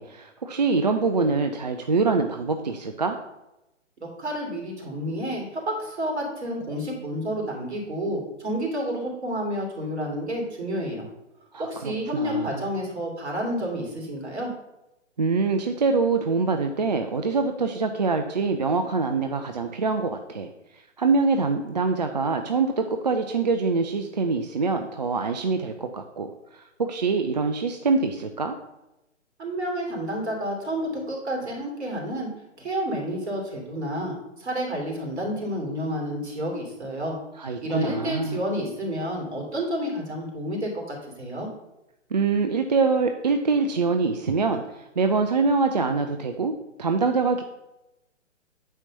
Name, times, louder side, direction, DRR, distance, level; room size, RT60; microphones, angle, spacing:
voice 1, 0.0-3.2 11.5-12.6 15.2-20.5 21.0-28.6 37.4-38.4 42.1-46.5 46.8-47.4, right 4 dB, 35° right, 6 dB, 0.4 m, -24 dB
voice 2, 4.0-11.1 11.6-14.5 29.4-32.3 32.6-37.2 37.6-41.5, equal, 60° right, 0 dB, 2.8 m, -30 dB
8.9 x 3.0 x 6.4 m, 0.92 s
figure-of-eight pair, 130°, 37 cm